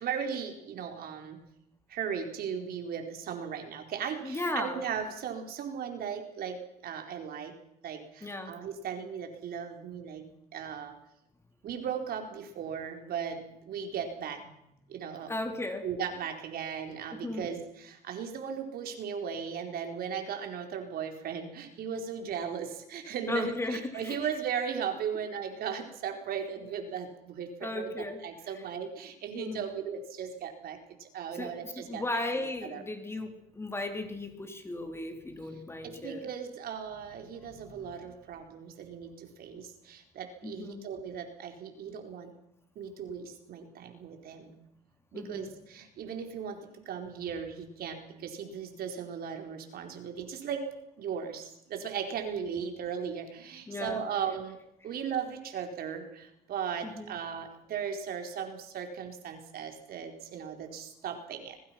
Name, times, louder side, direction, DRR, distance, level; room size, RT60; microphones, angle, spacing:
voice 1, 0.0-1.4 1.9-7.6 7.8-10.3 10.5-11.0 11.6-14.4 14.9-15.3 15.8-32.2 32.6-32.8 35.5-42.3 42.8-44.6 45.1-54.6 54.8-61.6, right 7 dB, 65° right, 5 dB, 4.5 m, -37 dB
voice 2, 4.2-4.8 8.2-8.6 14.4-14.5 15.3-15.9 17.1-17.6 23.3-24.4 27.6-28.7 29.4-29.8 31.3-36.3 37.0-37.9 40.4-40.8 45.1-45.5 53.7-54.1 56.8-57.2, left 2 dB, 15° left, 5 dB, 3.7 m, -36 dB
25.0 x 22.0 x 6.0 m, 0.79 s
cardioid pair, 110°, 17 cm